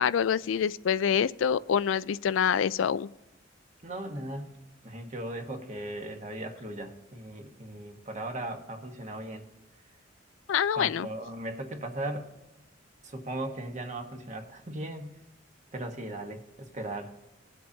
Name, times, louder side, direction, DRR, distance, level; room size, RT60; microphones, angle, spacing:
voice 1, 0.0-3.1 10.5-11.1, left 8 dB, 90° left, 17 dB, 0.4 m, -26 dB
voice 2, 3.8-4.5 4.8-9.4 10.8-12.3 13.0-15.2 15.7-17.1, right 1 dB, 40° right, 4 dB, 1.4 m, -37 dB
20.0 x 7.8 x 2.8 m, 0.96 s
head